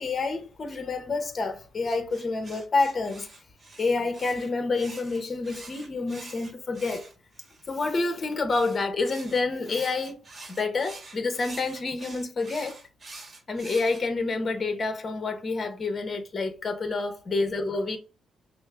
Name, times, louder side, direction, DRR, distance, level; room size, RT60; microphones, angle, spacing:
voice 1, 0.0-3.3 3.8-7.1 7.7-10.2 10.6-12.8 13.5-18.0, left 3 dB, 35° left, 1.0 m, -28 dB
sound 1, 1.8-7.7 8.5-14.0, right 2 dB, 35° right, 1.1 m, -46 dB
6.1 x 2.1 x 2.4 m
cardioid pair, 90°, 0 cm